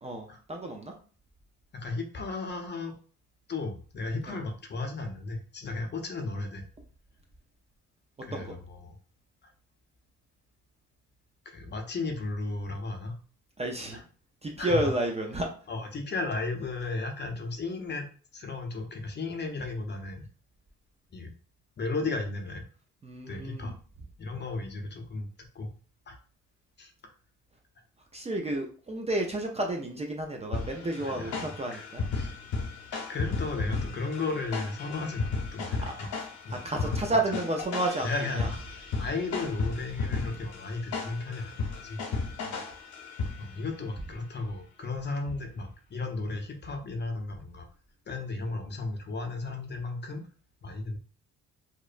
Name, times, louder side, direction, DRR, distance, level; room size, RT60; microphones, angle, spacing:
voice 1, 0.0-0.9 4.3-4.4 8.3-8.5 13.6-14.0 14.4-15.5 23.0-23.7 28.1-32.0 35.8-35.9 36.5-38.1 38.4-38.5 42.4-42.6, right 1 dB, 20° right, 2 dB, 0.4 m, -31 dB
voice 2, 1.7-2.9 3.5-6.6 8.2-8.9 11.5-13.2 13.9-14.0 14.6-14.9 15.7-18.1 18.3-20.3 21.1-21.3 21.8-22.6 23.3-23.7 24.2-25.7 26.1-26.2 26.8-27.1 31.0-32.3 33.1-36.1 36.4-37.2 38.0-38.6 38.9-42.0 43.4-47.7 48.1-50.2 50.6-51.0, left 3 dB, 35° left, 4 dB, 0.6 m, -35 dB
sound 1, 30.5-43.7, left 4 dB, 70° left, 0.9 m, -35 dB
2.8 x 2.1 x 2.4 m, 0.40 s
cardioid pair, 90°, 30 cm